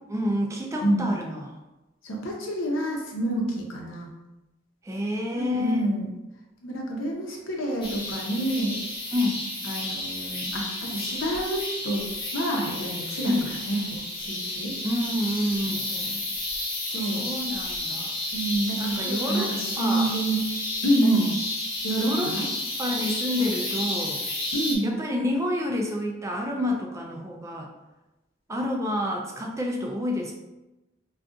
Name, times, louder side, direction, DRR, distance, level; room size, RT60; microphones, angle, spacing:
voice 1, 0.1-1.5 4.8-5.8 9.1-9.4 13.2-13.5 14.8-15.9 17.1-18.1 18.8-20.1 21.0-21.3 22.0-22.3 22.8-24.2 24.8-27.7 28.5-30.3, left 1 dB, 15° right, 0 dB, 0.3 m, -28 dB
voice 2, 2.0-4.1 5.3-6.1 6.6-8.8 9.6-14.8 15.7-16.1 16.8-17.3 18.3-21.3 21.8-22.5 24.5-24.9, right 1 dB, 85° left, -1 dB, 0.7 m, -28 dB
sound 1, 7.8-24.7, left 1 dB, 25° left, 0.6 m, -32 dB
2.4 x 2.3 x 3.7 m, 1.0 s
head